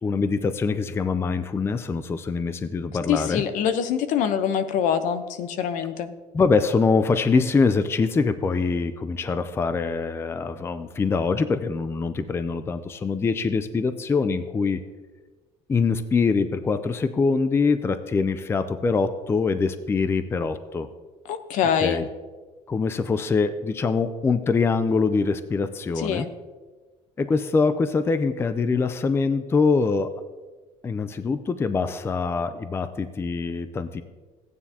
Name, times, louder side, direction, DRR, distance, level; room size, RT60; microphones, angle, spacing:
voice 1, 0.0-3.4 6.3-14.8 15.7-20.9 21.8-22.1 22.7-26.3 27.2-30.1 30.8-34.0, left 4 dB, 20° left, 11 dB, 0.4 m, -24 dB
voice 2, 3.1-6.1 21.3-22.1 26.0-26.3, left 8 dB, 70° left, 10 dB, 0.9 m, -24 dB
15.0 x 9.5 x 2.8 m, 1.3 s
cardioid pair, 140°, 13 cm